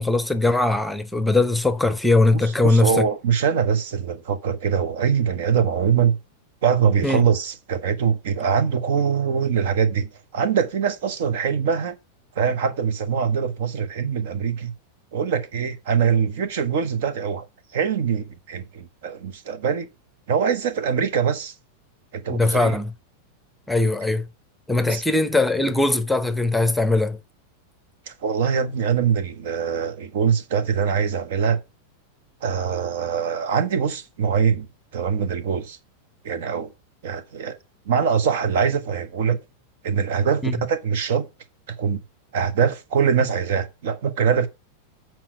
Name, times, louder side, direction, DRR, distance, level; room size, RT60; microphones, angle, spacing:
voice 1, 0.0-3.0 7.0-7.2 22.3-22.9 23.7-24.2 24.7-27.2 40.4-40.6, left 2 dB, 5° left, 0.8 m, -20 dB
voice 2, 2.3-6.2 6.6-12.0 12.4-14.7 15.1-17.5 17.7-19.9 20.3-21.5 22.1-22.8 24.9-25.0 28.1-31.6 32.4-34.7 34.9-35.8 36.2-36.7 37.0-37.6 37.9-39.4 39.8-41.3 41.7-42.0 42.3-44.5, right 7 dB, 55° right, 1.0 m, -23 dB
7.5 x 4.5 x 5.9 m
figure-of-eight pair, 90°, 0 cm